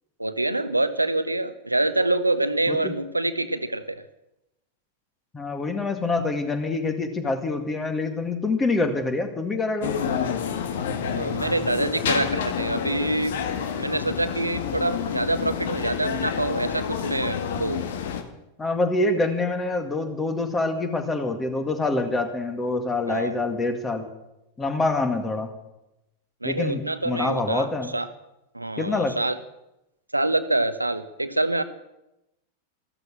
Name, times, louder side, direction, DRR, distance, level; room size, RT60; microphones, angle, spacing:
voice 1, 0.2-4.0 11.1-13.4 13.8-17.8 23.1-23.4 26.4-27.7 27.9-28.1 28.5-29.4 30.1-31.6, right 2 dB, 85° right, 11 dB, 0.9 m, -26 dB
voice 2, 5.3-10.0 18.6-24.1 24.6-25.5 26.4-27.9 28.8-29.1, left 3 dB, 15° left, 7 dB, 2.2 m, -26 dB
sound 1, 9.8-18.2, left 7 dB, 55° left, 1.7 m, -28 dB
14.0 x 13.0 x 7.4 m, 0.90 s
figure-of-eight pair, 90°, 0 cm